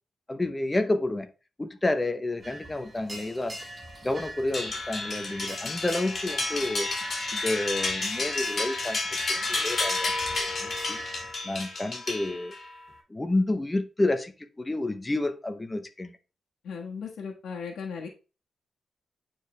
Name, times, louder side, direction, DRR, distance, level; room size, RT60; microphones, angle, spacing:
voice 1, 0.3-1.3 1.6-3.6 4.0-6.9 7.3-9.0 9.3-11.0 11.4-12.5 13.1-16.2, left 2 dB, 15° left, 0.8 m, -30 dB
sound 1, 2.4-11.3, right 1 dB, 15° right, 1.7 m, -43 dB
sound 2, 4.5-12.7, left 3 dB, 35° left, 2.7 m, -31 dB
voice 2, 16.6-18.1, left 5 dB, 80° left, 1.4 m, -36 dB
9.0 x 4.6 x 3.2 m
wide cardioid pair, 160°, 0 cm